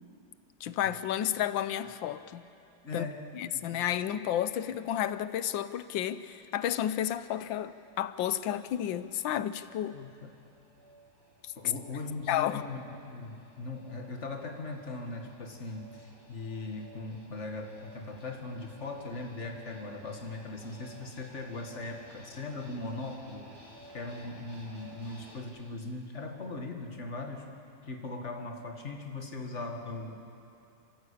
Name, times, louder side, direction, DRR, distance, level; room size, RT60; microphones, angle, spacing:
voice 1, 0.6-2.4 2.9-3.0 3.3-10.0 11.4-11.7 12.3-12.6, left 11 dB, 75° left, 13 dB, 1.4 m, -31 dB
voice 2, 2.8-3.9 9.9-10.3 11.6-23.5 23.9-27.6 27.8-30.2, left 3 dB, 35° left, 3 dB, 2.2 m, -39 dB
sound 1, 6.5-25.4, right 1 dB, 60° right, 4.7 m, -55 dB
30.0 x 13.5 x 8.5 m, 2.6 s
omnidirectional pair, 2.1 m